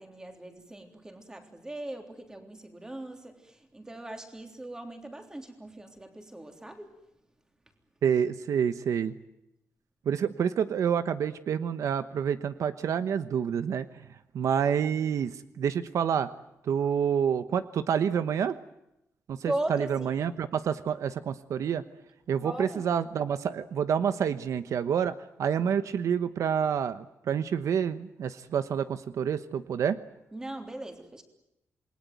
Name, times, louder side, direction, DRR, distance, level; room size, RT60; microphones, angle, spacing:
voice 1, 0.0-6.9 19.5-20.1 22.4-22.8 30.3-31.2, right 1 dB, 10° right, 5 dB, 3.5 m, -38 dB
voice 2, 8.0-9.1 10.0-14.1 14.3-16.3 16.6-18.6 19.3-21.8 22.3-30.0, right 8 dB, 75° right, 12 dB, 1.1 m, -28 dB
28.0 x 21.0 x 9.3 m, 0.86 s
wide cardioid pair, 170°, 6 cm